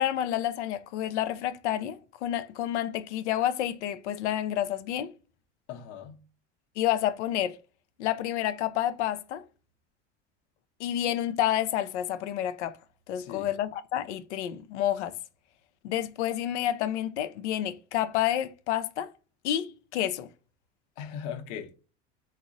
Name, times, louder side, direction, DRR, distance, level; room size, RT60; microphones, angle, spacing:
voice 1, 0.0-5.1 6.8-7.6 8.0-9.5 10.8-12.8 13.1-15.1 15.8-19.1 19.4-20.3, left 11 dB, 90° left, 0.5 m, -29 dB
voice 2, 5.7-6.2 13.2-13.5 21.0-21.7, left 8 dB, 60° left, 0.8 m, -39 dB
3.7 x 2.0 x 2.5 m
supercardioid pair, 100°, 34 cm